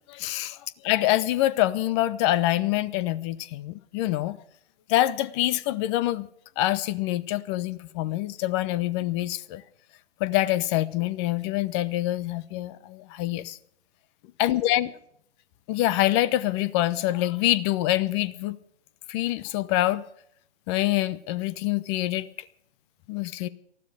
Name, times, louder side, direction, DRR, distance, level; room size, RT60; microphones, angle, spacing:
voice 1, 0.1-4.4 4.9-6.3 6.6-9.6 10.2-13.6 14.4-14.9 15.7-18.6 19.1-20.0 20.7-22.3 23.1-23.5, left 15 dB, 25° left, 0.9 m, -25 dB
19.5 x 14.5 x 5.0 m
figure-of-eight pair, 125°, 33 cm